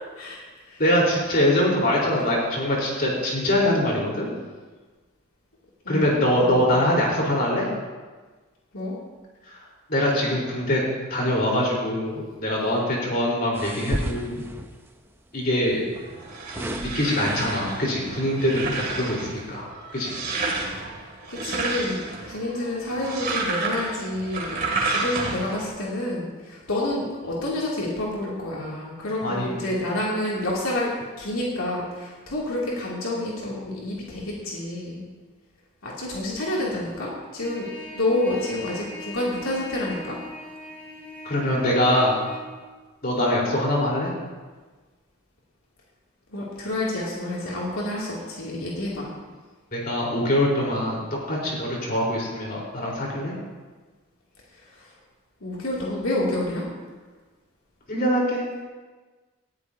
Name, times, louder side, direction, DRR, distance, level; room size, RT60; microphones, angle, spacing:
voice 1, 0.2-0.8 5.8-6.7 8.7-9.0 20.8-21.0 21.3-30.9 31.2-35.0 35.8-40.2 46.3-49.1 54.5-54.9 55.4-56.6, left 1 dB, 80° left, -5 dB, 2.8 m, -29 dB
voice 2, 0.8-4.3 5.9-7.7 9.5-9.6 9.9-10.8 11.1-14.4 15.3-15.8 16.5-20.1 29.2-29.7 41.2-42.2 43.0-44.1 49.7-51.0 51.3-53.3 57.9-58.4, left 1 dB, 45° left, -3 dB, 4.2 m, -23 dB
sound 1, 13.5-14.9 15.9-17.9 18.5-18.7, right 1 dB, 10° right, 0.6 m, -34 dB
sound 2, 16.0-25.7, right 3 dB, 45° right, 2.5 m, -31 dB
Trumpet, 37.4-42.4, left 1 dB, 10° left, 2.3 m, -40 dB
19.0 x 13.5 x 2.8 m, 1.3 s
head